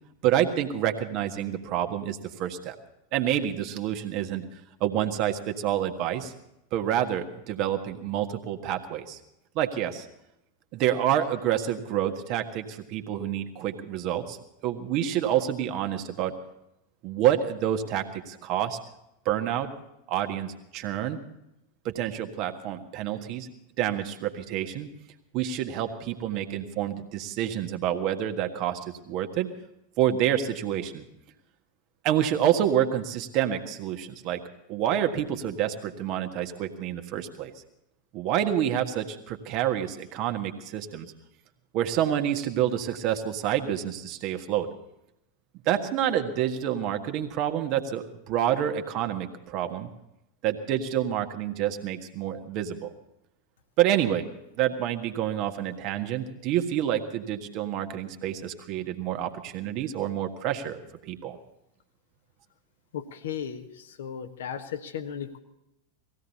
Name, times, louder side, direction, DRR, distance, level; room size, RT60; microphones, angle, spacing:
voice 1, 0.2-2.7 3.1-4.4 4.8-6.3 6.7-9.2 9.5-10.0 10.7-14.4 14.6-16.3 17.0-18.8 19.2-19.7 20.1-21.2 21.8-23.5 23.8-24.9 25.3-28.8 29.0-29.5 30.0-31.0 32.0-34.4 34.7-37.5 38.1-41.1 41.7-44.7 45.6-49.9 50.4-52.9 53.8-54.3 54.6-61.4, right 11 dB, 40° right, 6 dB, 1.6 m, -28 dB
voice 2, 62.9-65.4, left 8 dB, 60° left, 9 dB, 1.4 m, -36 dB
19.0 x 16.0 x 4.2 m, 0.85 s
figure-of-eight pair, 90°, 0 cm